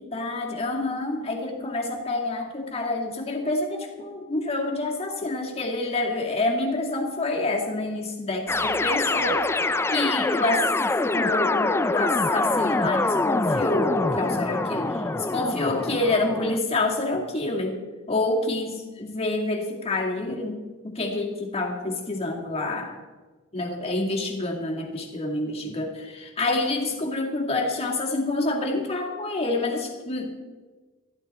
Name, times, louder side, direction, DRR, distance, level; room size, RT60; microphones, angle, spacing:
voice 1, 0.0-9.5 9.9-10.6 11.1-17.8 18.1-20.6 20.8-23.0 23.5-30.4, left 2 dB, 30° left, 0 dB, 2.2 m, -27 dB
sound 1, 8.5-16.6, left 2 dB, 10° left, 0.4 m, -25 dB
13.5 x 13.0 x 4.3 m, 1.3 s
head